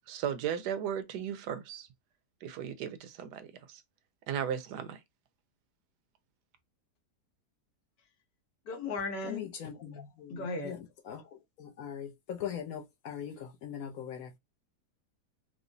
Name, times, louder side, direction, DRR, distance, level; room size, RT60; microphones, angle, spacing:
voice 1, 0.1-1.9 2.4-3.8 4.3-5.0, right 9 dB, 80° right, 1.2 m, -36 dB
voice 2, 8.7-9.5 10.3-10.8, left 3 dB, 85° left, 1.6 m, -36 dB
voice 3, 9.2-11.2 11.6-14.4, left 9 dB, 70° left, 1.0 m, -41 dB
4.8 x 2.0 x 2.6 m
omnidirectional pair, 1.8 m